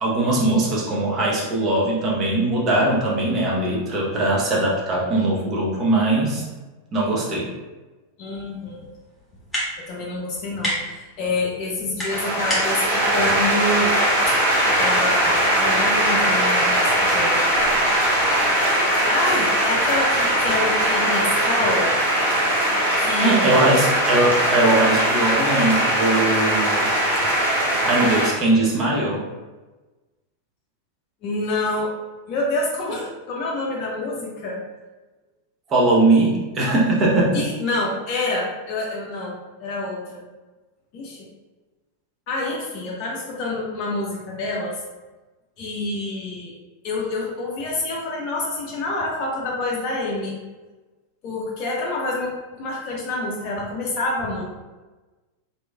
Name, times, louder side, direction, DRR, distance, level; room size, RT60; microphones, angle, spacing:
voice 1, 0.0-6.4 6.9-7.5 23.2-26.9 27.8-29.2 35.7-37.4, right 2 dB, 30° right, -4 dB, 0.8 m, -20 dB
voice 2, 8.2-8.9 9.9-14.4 14.8-17.5 19.1-21.9 23.0-23.8 31.2-31.9 32.3-34.6 37.3-40.2 40.9-41.3 42.3-44.8 45.6-46.5 46.8-50.4 51.2-54.4, left 2 dB, 40° left, -3 dB, 0.5 m, -27 dB
sound 1, 8.3-15.1, equal, 5° left, 1.3 m, -33 dB
sound 2, 12.1-28.3, right 1 dB, 80° right, 0.7 m, -20 dB
2.9 x 2.6 x 2.2 m, 1.2 s
figure-of-eight pair, 90°, 0 cm